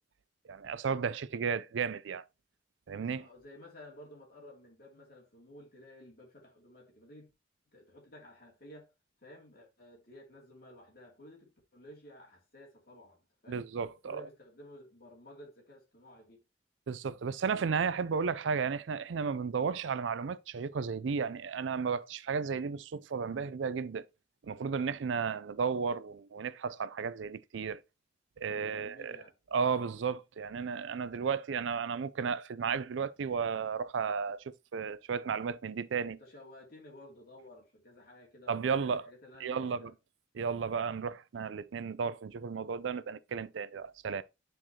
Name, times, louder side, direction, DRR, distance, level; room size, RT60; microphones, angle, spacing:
voice 1, 0.5-2.2 2.9-3.3 13.5-14.2 16.9-24.0 24.4-27.8 28.4-29.2 29.5-36.2 38.5-39.0 39.4-39.9 40.3-44.2, right 6 dB, 75° right, 0.4 m, -33 dB
voice 2, 3.1-7.3 7.7-8.9 9.2-13.6 14.0-16.4 28.5-29.3 36.1-39.9, left 1 dB, 50° left, 2.6 m, -54 dB
9.9 x 4.6 x 2.8 m
head